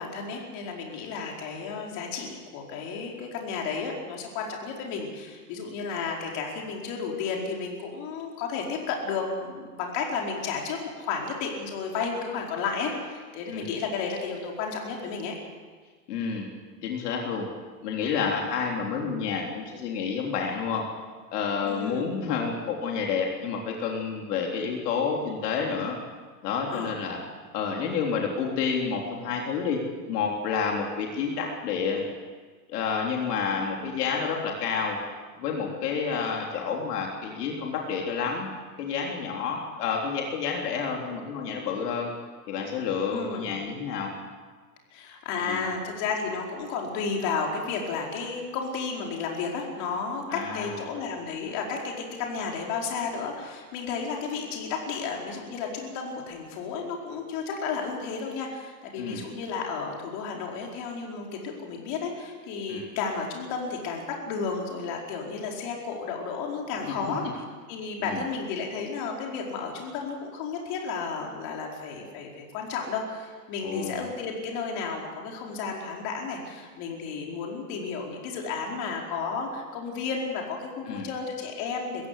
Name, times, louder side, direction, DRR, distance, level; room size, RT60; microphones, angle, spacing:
voice 1, 0.0-15.3 21.6-22.1 26.7-26.9 43.1-43.5 44.9-82.1, left 5 dB, 45° left, 0 dB, 4.8 m, -32 dB
voice 2, 16.1-16.5 16.8-17.5 17.8-20.8 21.3-26.0 26.4-27.2 27.5-29.8 30.1-32.0 32.7-35.0 35.4-38.5 38.8-42.1 42.5-44.1 45.5-45.6 50.3-50.8 59.0-59.2 62.7-62.9 66.9-67.0 68.0-68.2 73.6-74.0 80.9-81.1, left 6 dB, 70° left, 0 dB, 3.7 m, -29 dB
22.0 x 15.5 x 8.4 m, 1.5 s
supercardioid pair, 150°, 49 cm